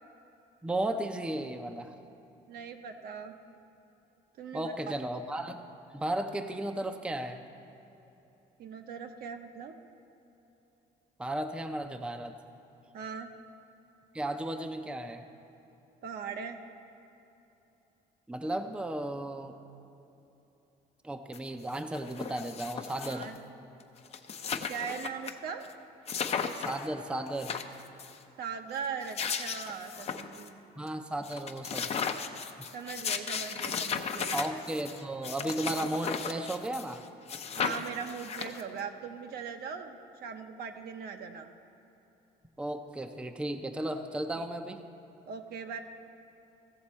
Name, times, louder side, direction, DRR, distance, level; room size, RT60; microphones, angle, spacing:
voice 1, 0.6-2.0 4.5-5.7 5.9-7.4 11.2-12.4 14.1-15.2 18.3-19.6 21.0-23.3 26.5-27.6 30.8-31.9 34.3-37.0 42.6-44.8, right 1 dB, 5° right, 6 dB, 0.5 m, -34 dB
voice 2, 2.5-3.3 4.4-4.9 8.6-9.7 12.9-13.3 16.0-16.6 23.1-23.4 24.7-25.7 28.4-30.6 32.7-34.4 37.6-41.5 44.3-44.4 45.3-45.8, right 6 dB, 65° right, 6 dB, 0.8 m, -40 dB
sound 1, 21.3-21.4 21.7-23.4 23.8-23.9 24.1-25.3 25.6-25.7 26.1-26.9 27.3-28.2 28.8-30.5 30.9-31.0 31.2-37.0 37.3-38.8, left 6 dB, 40° left, 0.6 m, -35 dB
15.5 x 7.1 x 4.3 m, 3.0 s
cardioid pair, 110°, 17 cm